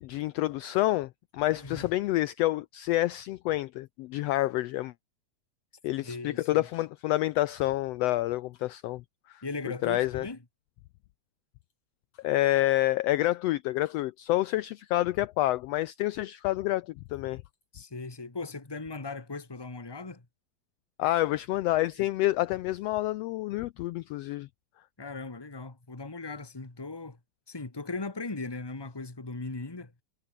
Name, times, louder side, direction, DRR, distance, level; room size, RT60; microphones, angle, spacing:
voice 1, 0.0-4.9 5.8-9.0 9.3-9.4 9.8-10.2 12.2-17.4 21.0-24.5, left 16 dB, 85° left, 1.4 m, -28 dB
voice 2, 1.5-1.9 6.0-6.7 9.4-10.4 17.7-20.2 25.0-27.2 27.5-29.9, left 3 dB, 10° left, 1.5 m, -38 dB
omnidirectional pair, 3.5 m